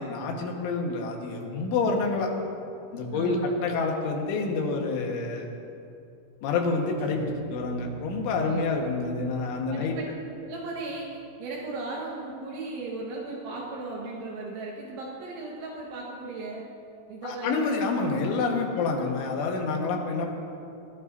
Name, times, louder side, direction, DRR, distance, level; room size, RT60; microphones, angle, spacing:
voice 1, 0.0-2.3 2.9-5.5 6.4-9.9 17.2-20.3, left 4 dB, 70° left, 0 dB, 3.8 m, -28 dB
voice 2, 3.1-3.5 8.5-8.7 9.7-10.1 10.4-16.7 17.1-17.6 18.7-18.9, right 3 dB, 75° right, -3 dB, 3.6 m, -36 dB
sound 1, 7.0-11.2, right 4 dB, 25° right, 3.9 m, -43 dB
21.0 x 18.0 x 2.7 m, 2.6 s
omnidirectional pair, 5.9 m